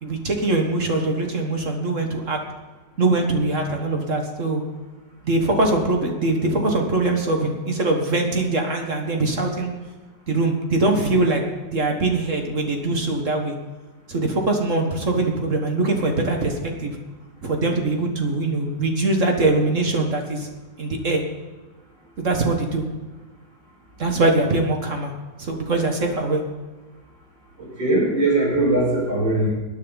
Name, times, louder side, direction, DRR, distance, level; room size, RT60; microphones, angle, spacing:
voice 1, 0.0-2.4 3.0-4.6 5.2-9.7 10.3-11.4 11.7-13.5 14.1-17.0 17.4-20.5 20.8-21.2 22.2-22.8 24.0-25.1 25.4-26.4, right 2 dB, 45° right, 3 dB, 1.7 m, -22 dB
voice 2, 27.6-29.5, right 2 dB, 80° right, -4 dB, 6.1 m, -20 dB
20.0 x 9.4 x 4.0 m, 1.3 s
omnidirectional pair, 2.0 m